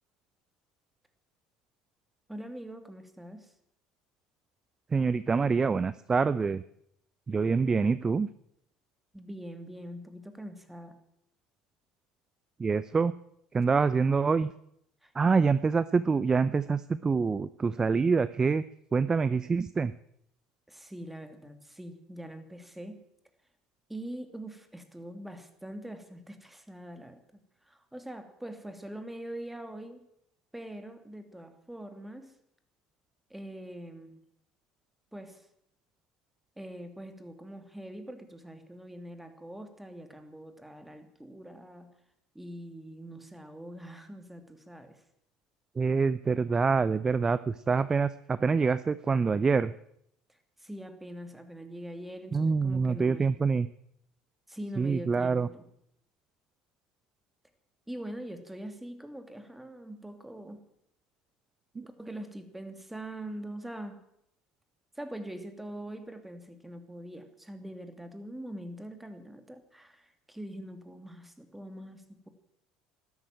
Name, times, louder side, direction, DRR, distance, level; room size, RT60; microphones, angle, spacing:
voice 1, 2.3-3.5 9.1-11.0 15.0-15.5 20.7-23.0 23.9-27.2 27.6-30.1 30.5-32.3 33.3-34.2 35.1-35.5 36.6-41.9 42.3-45.0 50.3-53.3 54.5-55.7 57.9-60.6 61.9-64.0 64.9-72.3, right 1 dB, 5° right, 8 dB, 2.7 m, -43 dB
voice 2, 4.9-6.6 7.3-8.3 12.6-13.1 13.5-14.5 15.1-18.6 18.9-19.9 45.8-49.7 52.3-53.7 54.8-55.5 61.8-61.9, right 5 dB, 25° right, 16 dB, 0.6 m, -26 dB
13.0 x 12.0 x 9.1 m, 0.74 s
hypercardioid pair, 70°, 2 cm